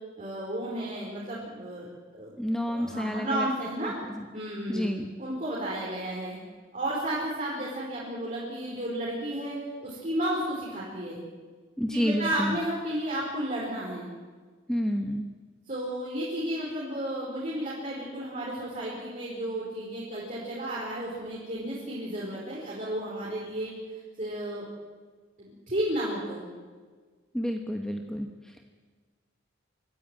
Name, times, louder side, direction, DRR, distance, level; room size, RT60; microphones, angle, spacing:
voice 1, 0.2-1.9 2.1-2.3 2.6-4.0 4.3-4.9 5.2-6.4 6.7-11.2 11.9-14.1 15.7-23.7 24.2-24.7 25.4-26.4, right 1 dB, 40° right, -6 dB, 4.9 m, -32 dB
voice 2, 2.4-3.5 3.8-3.9 4.7-5.1 11.8-12.6 14.7-15.3 27.3-28.6, equal, 5° left, 4 dB, 1.1 m, -29 dB
24.5 x 14.5 x 9.3 m, 1.5 s
head